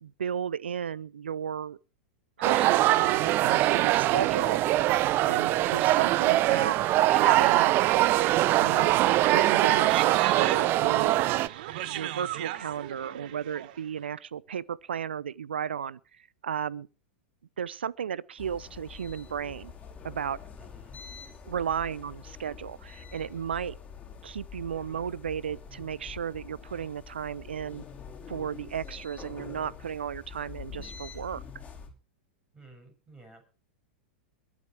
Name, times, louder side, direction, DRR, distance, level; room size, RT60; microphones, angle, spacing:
voice 1, 0.0-1.8 2.4-4.6 5.2-6.8 7.0-7.7 8.6-11.1 11.8-16.0 16.4-16.9 17.6-19.7 20.0-20.4 21.5-23.8 24.2-27.8 28.3-31.4, right 8 dB, 80° right, 0.6 m, -34 dB
sound 1, 2.4-11.5, right 15 dB, 40° right, 0.6 m, -23 dB
sound 2, 8.1-14.0, right 14 dB, 55° right, 1.1 m, -38 dB
sound 3, 18.4-31.9, left 6 dB, 20° left, 5.1 m, -45 dB
voice 2, 20.6-21.0 32.5-33.4, right 2 dB, 15° right, 7.4 m, -53 dB
22.0 x 8.8 x 4.7 m
hypercardioid pair, 100°, 6 cm